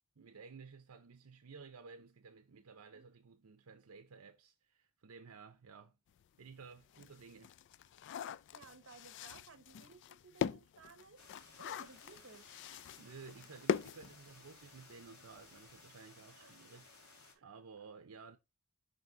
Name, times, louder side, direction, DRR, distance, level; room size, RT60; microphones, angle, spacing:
voice 1, 0.2-6.0 6.4-7.6 13.0-16.9 17.4-18.4, right 5 dB, 80° right, 0.6 m, -55 dB
sound 1, 6.2-6.3 6.7-14.8 15.1-15.2 15.5-15.7, left 7 dB, 55° left, 0.3 m, -42 dB
voice 2, 8.5-11.2 11.6-12.5 16.4-16.5 17.3-17.4, right 4 dB, 60° right, 1.0 m, -58 dB
sound 2, 11.2-17.3, left 3 dB, 75° left, 2.2 m, -59 dB
5.2 x 4.1 x 4.7 m
head